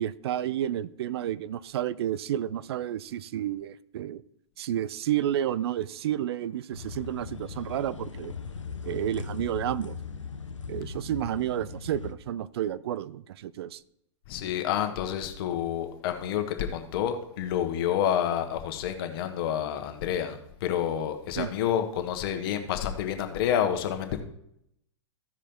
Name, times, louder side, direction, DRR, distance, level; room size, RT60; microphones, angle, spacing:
voice 1, 0.0-4.2 4.6-8.3 8.8-10.0 10.7-13.8 21.4-21.5, right 11 dB, 60° right, 18 dB, 0.4 m, -31 dB
sound 1, 6.7-12.1, left 5 dB, 90° left, 0.8 m, -39 dB
voice 2, 14.3-24.2, left 9 dB, 50° left, 6 dB, 1.4 m, -29 dB
14.5 x 4.9 x 4.5 m, 0.76 s
figure-of-eight pair, 105°, 15 cm